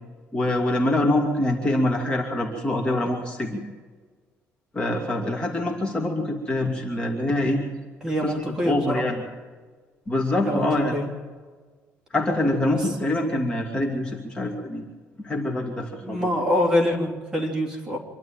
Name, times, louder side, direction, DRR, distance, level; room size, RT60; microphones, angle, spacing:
voice 1, 0.3-3.6 4.7-7.6 8.2-9.2 10.1-10.9 12.1-14.9 15.2-16.3, left 1 dB, 20° left, -1 dB, 2.8 m, -25 dB
voice 2, 8.0-9.0 10.4-11.1 12.7-12.8 16.0-18.0, left 1 dB, 15° right, -1 dB, 3.3 m, -25 dB
26.5 x 12.0 x 9.1 m, 1.5 s
cardioid pair, 170°, 5 cm